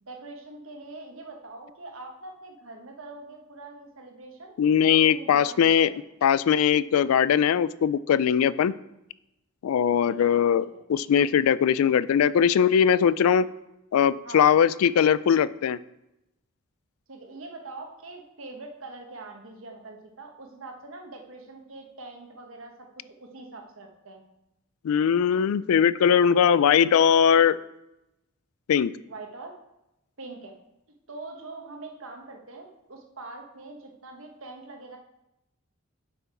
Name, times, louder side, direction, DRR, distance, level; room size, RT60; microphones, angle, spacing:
voice 1, 0.0-4.5 4.9-6.0 10.0-10.3 14.2-14.6 17.1-22.9 23.2-24.2 29.1-29.5 30.2-30.5 31.1-35.0, right 2 dB, 65° right, 3 dB, 1.2 m, -43 dB
voice 2, 4.6-5.9 6.2-8.7 9.6-13.5 13.9-15.8 24.8-27.6 28.7-28.9, left 8 dB, 80° left, 17 dB, 0.3 m, -20 dB
7.8 x 5.8 x 4.3 m, 0.89 s
head